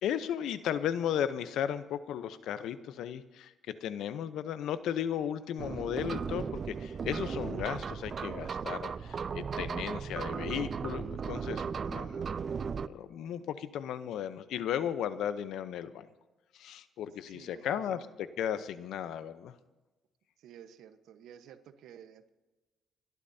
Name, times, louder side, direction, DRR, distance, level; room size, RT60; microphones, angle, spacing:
voice 1, 0.0-12.2 12.8-16.1 16.5-18.1 18.4-19.5, left 9 dB, 80° left, 13 dB, 0.8 m, -35 dB
sound 1, 5.6-12.9, right 6 dB, 45° right, 0.5 m, -36 dB
voice 2, 17.3-18.0 20.4-22.3, right 9 dB, 85° right, 9 dB, 1.1 m, -52 dB
27.5 x 12.0 x 2.8 m, 1.1 s
cardioid pair, 90°, 0 cm